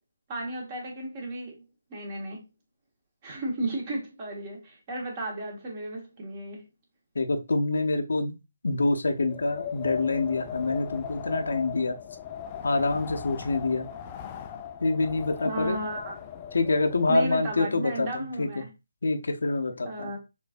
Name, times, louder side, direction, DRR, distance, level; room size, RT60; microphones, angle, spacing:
voice 1, 0.3-1.6 1.9-2.4 3.2-6.6 15.4-16.2 17.1-18.7 19.8-20.2, right 2 dB, 30° right, 1.2 m, -34 dB
voice 2, 7.1-8.3 8.6-12.0 12.6-13.9 14.8-15.8 16.5-18.5 19.0-20.1, left 3 dB, 70° left, 0.6 m, -26 dB
Wind, 9.1-17.5, left 8 dB, 25° left, 0.3 m, -38 dB
4.4 x 2.6 x 2.5 m
figure-of-eight pair, 150°, 0 cm